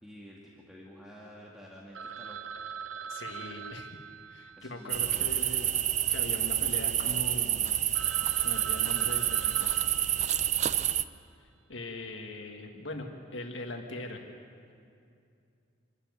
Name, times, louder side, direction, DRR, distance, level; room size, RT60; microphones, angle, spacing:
voice 1, 0.0-2.6 4.6-5.4, equal, 5° right, -4 dB, 2.0 m, -50 dB
Telephone, 1.9-6.3 6.6-6.7 7.2-7.3 7.6-7.7 7.9-10.9, right 7 dB, 80° right, 0.7 m, -43 dB
voice 2, 3.1-4.0 4.3-7.8 8.4-9.7 11.4-14.2, left 2 dB, 75° left, 2 dB, 1.8 m, -41 dB
sound 1, 4.9-11.0, right 11 dB, 40° right, 0.5 m, -28 dB
26.5 x 12.5 x 9.6 m, 2.4 s
head